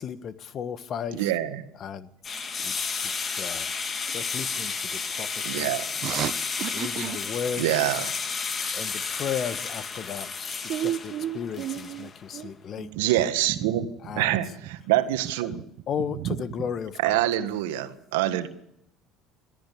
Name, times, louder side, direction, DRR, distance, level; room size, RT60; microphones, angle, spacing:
voice 1, 0.0-1.3 1.8-2.1 2.6-3.7 4.1-5.8 6.7-7.8 8.7-10.3 10.6-12.9 14.0-14.4 15.9-17.3, left 8 dB, 50° left, 1.4 m, -35 dB
voice 2, 1.2-1.6 5.5-5.8 7.6-8.1 13.0-13.8 14.2-14.5 14.9-15.6 17.0-18.5, right 14 dB, 85° right, 1.6 m, -25 dB
sound 1, 2.2-12.2, left 5 dB, 35° left, 1.9 m, -32 dB
voice 3, 6.0-7.2 8.6-8.7 10.7-13.2 13.5-13.9 14.1-14.4 16.1-16.4, right 11 dB, 60° right, 1.1 m, -33 dB
22.0 x 14.0 x 8.6 m
supercardioid pair, 85°, 0 cm